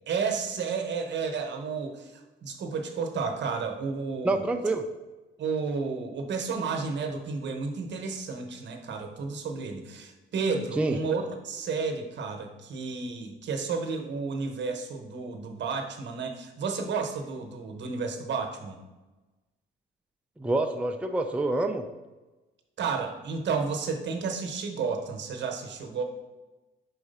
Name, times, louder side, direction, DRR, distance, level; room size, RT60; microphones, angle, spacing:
voice 1, 0.1-4.4 5.4-18.8 22.8-26.0, right 5 dB, 65° right, 5 dB, 0.9 m, -32 dB
voice 2, 4.2-4.9 10.8-11.0 20.4-21.8, right 2 dB, 5° right, 5 dB, 0.4 m, -27 dB
4.8 x 4.0 x 5.3 m, 1.1 s
cardioid pair, 90°, 20 cm